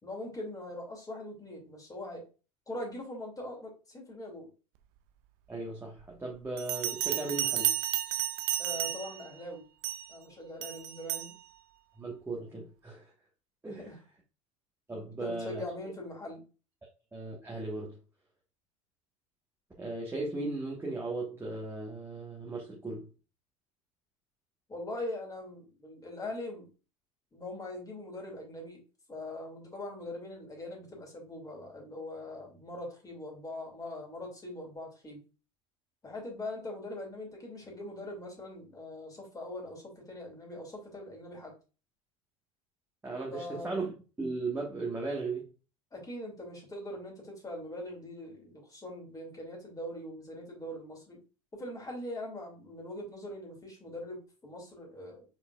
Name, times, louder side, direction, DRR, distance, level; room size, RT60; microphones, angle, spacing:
voice 1, 0.0-2.3 2.7-4.5 8.6-9.7 10.1-11.4 13.6-14.0 15.2-16.4 24.7-26.7 27.3-28.8 29.1-35.2 36.0-41.5 43.3-43.8 45.9-51.2 51.5-55.2, left 1 dB, 20° left, 2.3 m, -42 dB
voice 2, 5.5-7.7 12.0-13.0 13.6-13.8 14.9-15.6 17.1-18.0 19.8-23.1 43.0-43.9 44.2-45.5, right 3 dB, 15° right, 1.3 m, -36 dB
Bell, 6.6-9.3 9.8-10.1 10.6-11.3, right 13 dB, 55° right, 0.5 m, -32 dB
4.9 x 3.8 x 2.3 m
hypercardioid pair, 75°, 18 cm